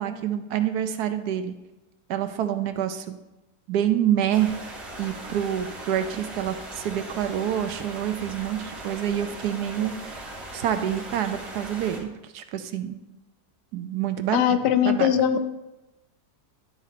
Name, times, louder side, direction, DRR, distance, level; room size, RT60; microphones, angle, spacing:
voice 1, 0.0-1.5 2.1-3.2 3.7-4.5 5.0-10.2 10.5-12.1 12.3-13.0 13.7-14.6 14.8-15.1, right 10 dB, 75° right, 9 dB, 1.1 m, -27 dB
sound 1, 4.3-12.0, right 1 dB, 45° right, 2.1 m, -39 dB
voice 2, 14.3-15.5, left 9 dB, 85° left, 10 dB, 1.2 m, -21 dB
11.5 x 4.1 x 4.1 m, 1.0 s
omnidirectional pair, 1.8 m